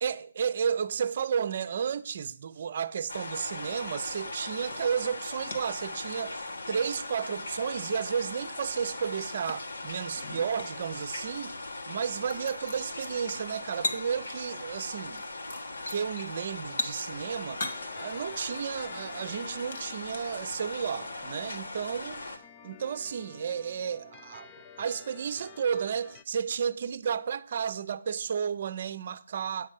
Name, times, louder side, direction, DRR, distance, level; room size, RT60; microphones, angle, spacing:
voice 1, 0.0-11.5 11.9-15.2 15.9-17.6 18.0-22.3 22.6-29.7, right 7 dB, 45° right, 0.6 m, -32 dB
sound 1, 3.1-22.4, left 2 dB, 75° left, 1.6 m, -39 dB
sound 2, 4.6-5.9 6.1-7.3 7.8-7.9 8.8-11.7 11.9-14.5 14.8-20.7 21.5-21.6, left 2 dB, 55° left, 1.9 m, -41 dB
sound 3, 17.7-26.2, left 8 dB, 20° left, 0.4 m, -52 dB
9.2 x 5.3 x 7.5 m
hypercardioid pair, 160°, 0 cm